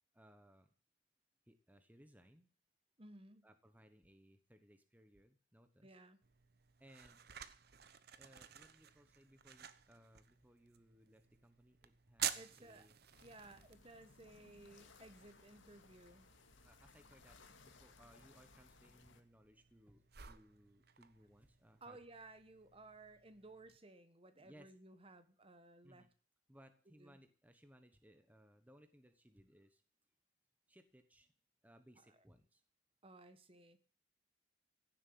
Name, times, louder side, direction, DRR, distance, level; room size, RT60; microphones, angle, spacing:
voice 1, 0.1-0.7 1.5-2.5 3.4-6.0 6.8-7.3 8.2-13.0 16.6-22.0 24.3-24.7 25.8-26.1 26.5-29.8 30.7-31.3 31.6-32.6, equal, 10° right, 8 dB, 1.1 m, -65 dB
voice 2, 3.0-3.5 5.8-6.2 12.3-12.9 13.2-16.3 21.8-26.1 26.9-27.2 32.1-32.2 33.0-33.8, right 2 dB, 30° right, 11 dB, 1.4 m, -58 dB
sound 1, 6.2-23.8, right 10 dB, 55° right, 1.0 m, -51 dB
sound 2, 13.1-19.2, left 3 dB, 85° left, 2.2 m, -64 dB
16.0 x 7.7 x 8.6 m, 0.42 s
head